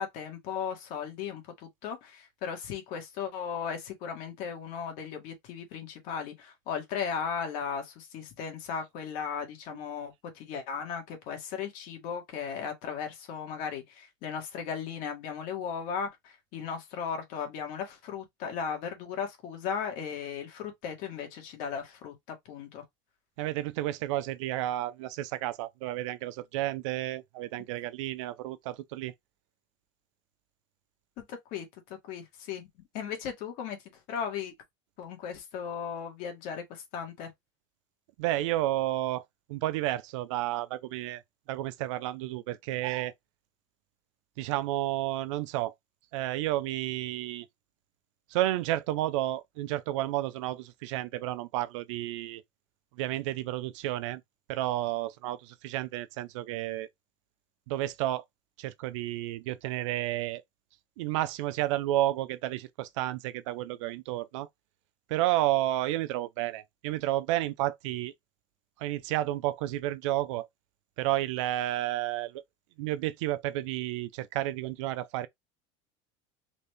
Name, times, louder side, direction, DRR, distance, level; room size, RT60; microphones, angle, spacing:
voice 1, 0.0-22.8 31.2-32.7 32.9-33.8 34.1-34.5 35.0-37.3, left 7 dB, 60° left, 1.7 m, -36 dB
voice 2, 23.4-29.1 38.2-39.2 39.5-41.2 41.5-43.1 44.4-45.7 46.1-47.5 48.3-52.4 53.0-54.2 54.5-56.9 57.7-58.2 58.6-60.4 61.0-64.5 65.1-68.1 68.8-70.5 71.0-72.4 72.8-75.3, right 15 dB, 90° right, 0.5 m, -31 dB
4.0 x 2.6 x 3.4 m
supercardioid pair, 140°, 15 cm